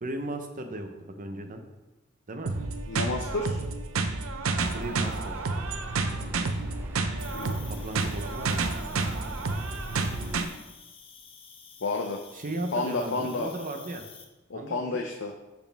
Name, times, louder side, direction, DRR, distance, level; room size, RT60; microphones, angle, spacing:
voice 1, 0.0-1.6 2.3-2.5 4.7-5.4 7.6-8.6 12.3-14.0 14.5-15.0, right 1 dB, 40° right, 5 dB, 0.8 m, -36 dB
sound 1, 2.5-10.5, right 3 dB, 80° right, 0.6 m, -30 dB
voice 2, 2.9-3.6 7.3-7.6 11.8-12.2 12.7-13.6 14.5-15.3, left 3 dB, 60° left, 2 dB, 0.6 m, -30 dB
sound 2, 4.6-10.4, right 1 dB, 10° right, 0.6 m, -43 dB
Cricket, 7.2-14.2, left 6 dB, 25° left, 0.7 m, -49 dB
11.5 x 4.3 x 3.4 m, 1.1 s
head